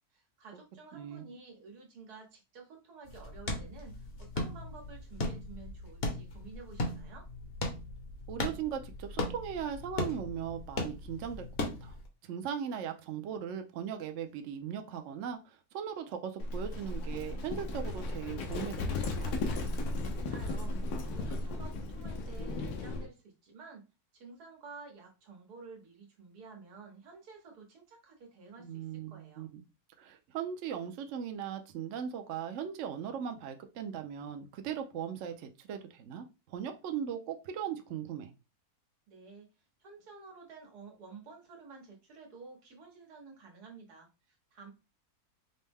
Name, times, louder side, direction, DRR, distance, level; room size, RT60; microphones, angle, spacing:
voice 1, 0.1-7.3 20.1-23.9 24.1-29.5 39.1-39.5 39.8-44.7, right 4 dB, 85° right, 1 dB, 1.7 m, -52 dB
voice 2, 0.9-1.2 8.3-11.4 11.8-12.0 12.2-18.8 19.2-19.4 28.6-29.6 30.0-38.3, right 8 dB, 65° right, 6 dB, 0.8 m, -38 dB
sound 1, 3.0-12.1, left 2 dB, 45° left, 0.9 m, -38 dB
Livestock farm animals working animals, 16.4-23.1, left 2 dB, 80° left, 1.3 m, -35 dB
5.3 x 2.1 x 3.4 m, 0.29 s
omnidirectional pair, 1.6 m